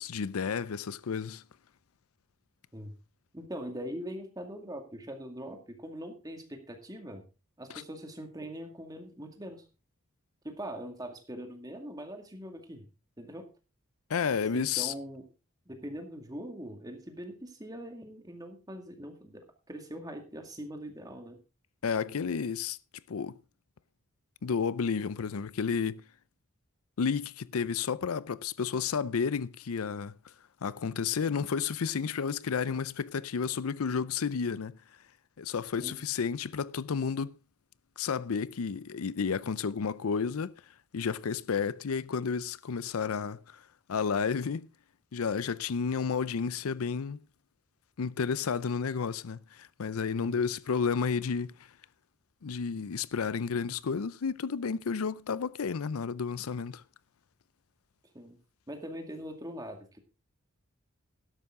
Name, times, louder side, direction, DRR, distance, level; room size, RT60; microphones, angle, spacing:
voice 1, 0.0-1.4 7.7-7.8 14.1-14.9 21.8-22.8 23.1-23.4 24.4-26.0 27.0-30.1 30.6-34.8 35.4-37.3 38.0-40.5 40.9-43.6 43.9-44.7 45.1-47.2 48.0-51.5 52.4-56.8, left 6 dB, 85° left, 0.5 m, -31 dB
voice 2, 3.3-7.2 7.6-9.7 10.4-12.8 13.2-13.5 14.5-15.2 15.7-19.4 19.7-21.4 35.8-36.0 50.2-50.4 58.1-58.4 58.7-60.0, equal, 15° right, 2.1 m, -42 dB
12.5 x 11.0 x 3.7 m
head